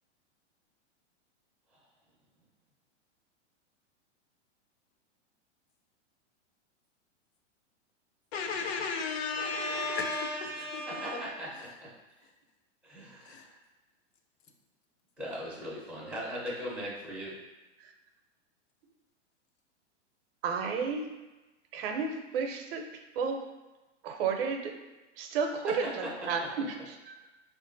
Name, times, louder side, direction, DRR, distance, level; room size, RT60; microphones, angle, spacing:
voice 1, 8.3-11.2 13.3-13.4, left 4 dB, 60° left, 4 dB, 0.6 m, -34 dB
voice 2, 9.4-11.9 12.8-13.5 15.2-17.3 25.7-26.5, equal, ahead, -9 dB, 0.4 m, -39 dB
voice 3, 20.4-21.1 21.7-22.9 23.2-23.5 24.0-24.8 25.2-27.1, right 5 dB, 50° right, 4 dB, 0.6 m, -32 dB
3.2 x 2.5 x 3.8 m, 1.1 s
hypercardioid pair, 140°, 37 cm